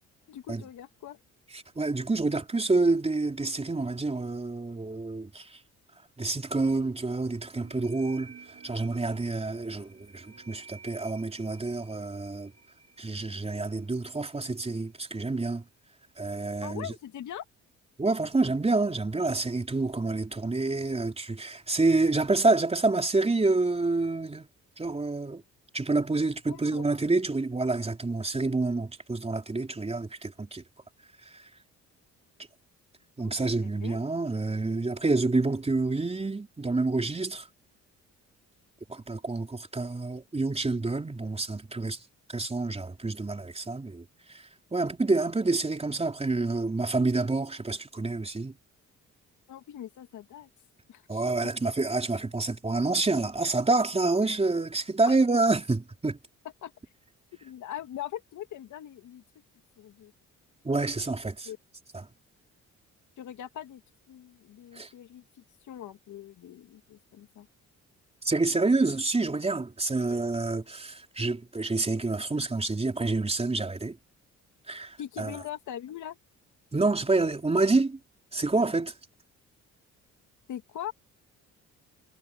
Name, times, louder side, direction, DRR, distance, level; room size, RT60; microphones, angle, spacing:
voice 1, 0.3-1.2 16.6-17.4 26.5-26.9 33.2-34.0 49.5-50.5 50.9-51.3 55.1-55.2 56.6-56.7 57.4-59.2 59.8-60.1 61.5-61.6 63.2-63.8 64.1-65.2 65.7-67.5 75.0-76.2 80.5-80.9, left 11 dB, 75° left, 2.6 m, -41 dB
voice 2, 1.8-5.6 6.2-8.3 8.6-12.5 13.0-15.6 16.2-16.9 18.0-24.5 24.8-25.4 25.7-30.6 33.2-37.5 38.9-42.0 42.3-44.4 44.7-48.5 51.1-56.2 60.6-61.5 61.9-62.0 64.7-64.9 68.2-74.0 74.7-75.4 76.7-78.0 78.3-78.9, right 3 dB, 20° right, 4.2 m, -28 dB
sound 1, 7.5-15.0, right 5 dB, 55° right, 7.1 m, -52 dB
cardioid pair, 90°, 30 cm